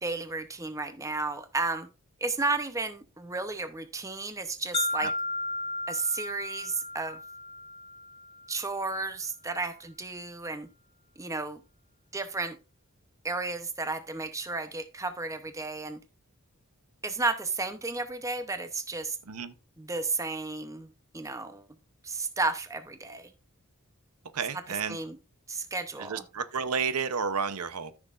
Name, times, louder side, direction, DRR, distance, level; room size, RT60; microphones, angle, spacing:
voice 1, 0.0-1.9 2.2-5.1 5.9-7.2 8.5-10.7 11.2-11.6 12.1-12.6 13.2-16.0 17.0-19.2 19.8-21.6 22.0-23.3 24.9-25.2 25.5-26.2, right 3 dB, 15° right, 0.7 m, -33 dB
sound 1, 4.7-8.7, left 2 dB, 25° left, 0.8 m, -35 dB
voice 2, 24.3-25.0 26.0-27.9, right 6 dB, 85° right, 0.8 m, -31 dB
13.5 x 6.2 x 2.5 m
head